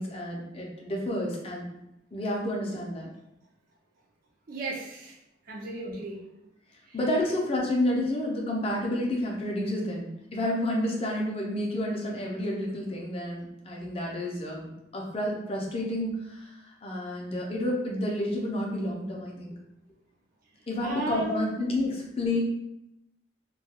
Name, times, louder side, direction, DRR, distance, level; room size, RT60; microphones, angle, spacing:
voice 1, 0.0-1.7 2.1-3.1 5.8-5.9 6.9-19.5 20.7-22.4, left 1 dB, 30° left, -2 dB, 0.5 m, -30 dB
voice 2, 4.5-5.2 5.5-6.2 6.9-7.0 20.8-21.6, right 1 dB, 50° right, -3 dB, 0.4 m, -35 dB
2.3 x 2.2 x 2.8 m, 0.85 s
head